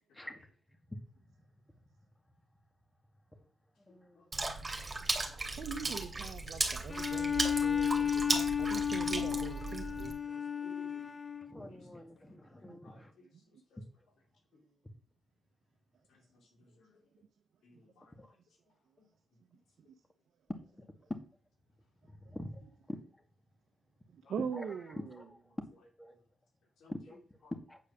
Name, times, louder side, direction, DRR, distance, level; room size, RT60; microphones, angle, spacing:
voice 1, 0.1-0.5 3.3-3.5 3.9-4.5 5.3-6.0 7.7-7.8 8.8-8.9 9.2-9.8 10.2-11.1 11.7-13.9 16.1-17.1 17.6-19.1 20.5-20.9 24.2-25.0 25.7-26.2 26.8-27.5, left 3 dB, 85° left, 2.7 m, -62 dB
voice 2, 3.9-4.5 11.5-13.1 13.8-13.9 18.2-18.3 20.8-21.1 22.1-23.0 24.5-25.7 26.0-26.2 26.9-27.2 27.7-27.8, left 1 dB, 15° left, 2.1 m, -45 dB
Water / Splash splatter, 4.3-10.1, right 2 dB, 30° right, 2.5 m, -36 dB
voice 3, 5.6-10.1 12.6-12.8 24.1-25.2, right 7 dB, 75° right, 0.8 m, -42 dB
Bowed string instrument, 6.9-11.6, left 8 dB, 35° left, 0.4 m, -33 dB
8.8 x 4.8 x 7.2 m
cardioid pair, 75°, 0 cm